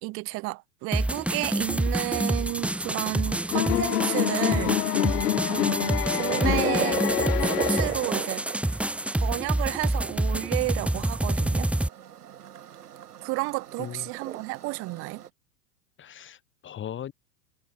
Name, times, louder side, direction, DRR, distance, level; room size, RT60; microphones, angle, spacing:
voice 1, 0.0-4.8 5.5-7.0 7.4-8.5 9.2-11.7 13.2-15.2, right 24 dB, 30° right, 0.8 m, -32 dB
sound 1, 0.9-11.9, right 1 dB, 5° right, 1.9 m, -27 dB
sound 2, 3.5-8.4, left 11 dB, 70° left, 1.3 m, -27 dB
sound 3, 5.5-15.3, right 10 dB, 70° right, 5.6 m, -37 dB
voice 2, 13.8-14.1 16.0-17.1, left 10 dB, 25° left, 5.7 m, -38 dB
hypercardioid pair, 110°, 48 cm